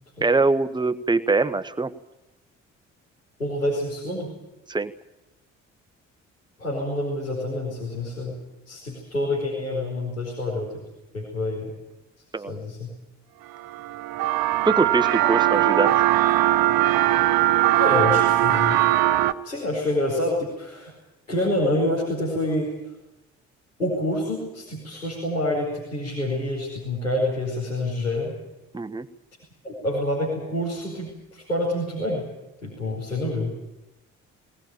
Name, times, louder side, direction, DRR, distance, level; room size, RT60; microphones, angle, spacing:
voice 1, 0.2-1.9 4.7-4.9 12.3-12.6 14.7-16.0 28.7-29.1, right 3 dB, 10° right, 10 dB, 1.1 m, -23 dB
voice 2, 3.4-4.3 6.6-8.3 8.7-10.7 11.1-11.7 12.5-12.9 17.8-18.8 19.4-20.9 21.3-22.7 23.8-28.3 29.6-32.2 32.6-33.5, left 1 dB, 90° left, -7 dB, 4.8 m, -27 dB
sound 1, 13.5-19.3, right 14 dB, 60° right, 1.0 m, -20 dB
19.5 x 19.5 x 9.0 m, 0.97 s
figure-of-eight pair, 45°, 38 cm